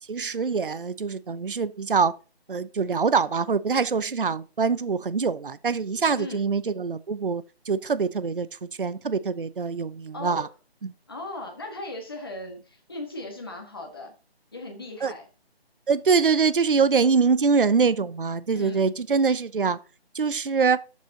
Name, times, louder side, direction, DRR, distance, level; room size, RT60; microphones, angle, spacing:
voice 1, 0.1-2.1 2.5-8.5 8.8-10.5 15.0-15.1 15.9-19.8 20.1-20.8, right 5 dB, 55° right, 0.6 m, -24 dB
voice 2, 10.1-10.5 11.1-14.1 14.5-15.3 18.5-18.9, left 2 dB, 20° left, 1.7 m, -37 dB
13.0 x 7.3 x 2.8 m
figure-of-eight pair, 180°, 32 cm